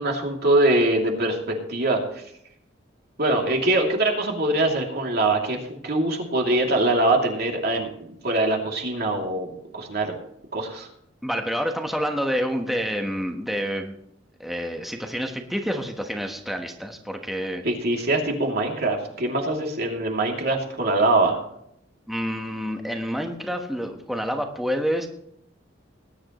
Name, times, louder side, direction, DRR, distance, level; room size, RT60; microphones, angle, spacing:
voice 1, 0.0-2.2 3.2-10.1 10.5-10.9 17.6-21.4, right 2 dB, 55° right, 0 dB, 2.8 m, -23 dB
voice 2, 11.2-14.0 14.4-17.6 22.1-25.1, equal, ahead, 3 dB, 1.2 m, -28 dB
19.5 x 10.5 x 3.1 m, 0.73 s
head